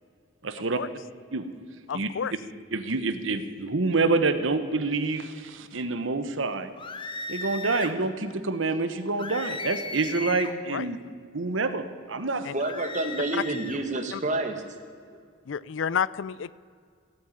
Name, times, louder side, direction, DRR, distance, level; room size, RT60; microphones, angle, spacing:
voice 1, 0.4-0.8 1.3-1.5 1.9-2.1 2.7-6.7 7.3-11.0 11.3-12.5, right 3 dB, 75° right, 10 dB, 1.1 m, -27 dB
voice 2, 1.9-2.3 10.7-10.9 12.4-12.5 14.1-14.2 15.5-16.5, left 7 dB, 70° left, 19 dB, 0.4 m, -30 dB
sound 1, 6.8-8.0 9.2-10.6 12.6-13.8, left 3 dB, 25° left, 1.0 m, -36 dB
voice 3, 12.5-14.6 15.1-15.2, right 2 dB, 40° right, 5 dB, 1.7 m, -29 dB
16.0 x 9.0 x 9.0 m, 2.1 s
head